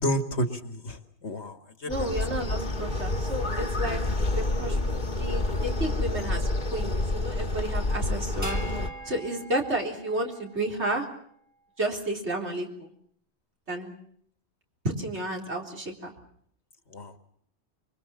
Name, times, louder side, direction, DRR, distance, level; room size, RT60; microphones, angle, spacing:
voice 1, 0.0-1.6 1.8-2.1 16.9-17.1, equal, 75° left, 8 dB, 2.2 m, -30 dB
sound 1, 1.9-8.9, left 2 dB, 45° left, 1.6 m, -28 dB
voice 2, 1.9-4.0 4.3-4.8 5.2-6.4 6.7-8.6 9.0-11.1 11.8-12.9 13.7-13.9 14.8-16.1, right 1 dB, 80° right, 1 dB, 4.3 m, -31 dB
sound 2, 8.4-11.0, right 2 dB, 15° right, 1.9 m, -42 dB
25.0 x 23.5 x 7.1 m, 0.64 s
omnidirectional pair, 1.1 m